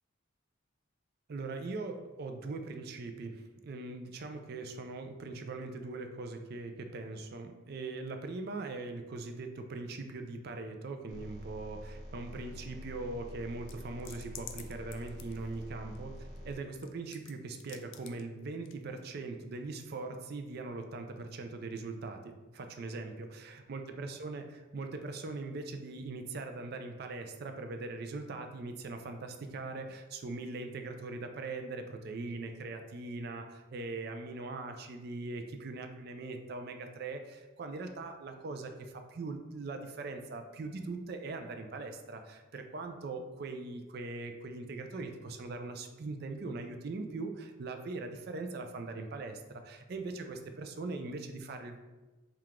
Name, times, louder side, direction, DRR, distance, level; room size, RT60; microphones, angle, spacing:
voice 1, 1.3-51.8, right 3 dB, 50° right, 5 dB, 0.4 m, -41 dB
sound 1, 11.1-16.5, equal, 20° right, 1.0 m, -47 dB
sound 2, 13.7-16.0 16.4-17.3 17.6-18.2 18.6-18.7, left 10 dB, 65° left, 0.4 m, -48 dB
4.6 x 2.4 x 3.6 m, 1.2 s
head